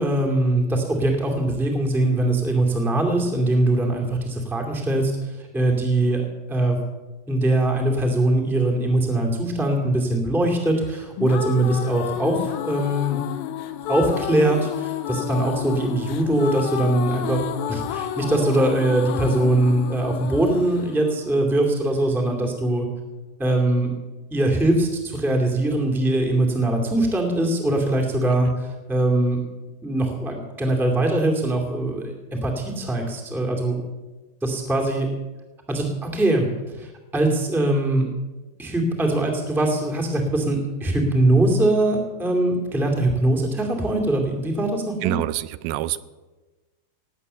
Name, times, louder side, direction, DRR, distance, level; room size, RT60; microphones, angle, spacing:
voice 1, 0.0-6.2 6.5-6.8 7.3-13.2 13.9-22.9 23.4-23.9 24.3-29.4 29.8-33.8 34.4-35.1 35.7-36.5 36.7-38.0 38.6-45.1, right 1 dB, ahead, 1 dB, 1.4 m, -22 dB
sound 1, 10.9-22.0, left 11 dB, 85° left, 2.6 m, -30 dB
voice 2, 45.0-46.0, right 14 dB, 85° right, 16 dB, 2.5 m, -26 dB
18.5 x 8.4 x 6.8 m, 1.2 s
omnidirectional pair, 4.3 m